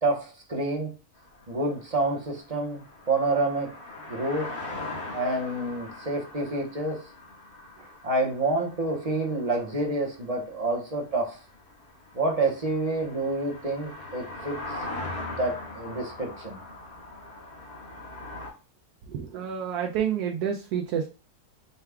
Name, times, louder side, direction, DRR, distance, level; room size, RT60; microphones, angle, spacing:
voice 1, 0.0-0.9 1.5-2.8 3.1-3.7 4.1-4.5 5.1-7.0 8.0-11.4 12.1-14.6 15.3-16.6, right 2 dB, 30° right, 0 dB, 0.7 m, -28 dB
sound 1, 1.2-18.5, left 2 dB, 85° left, 2.3 m, -41 dB
voice 2, 19.0-21.1, right 8 dB, 80° right, 2 dB, 1.1 m, -29 dB
5.5 x 2.3 x 3.4 m, 0.35 s
omnidirectional pair, 1.6 m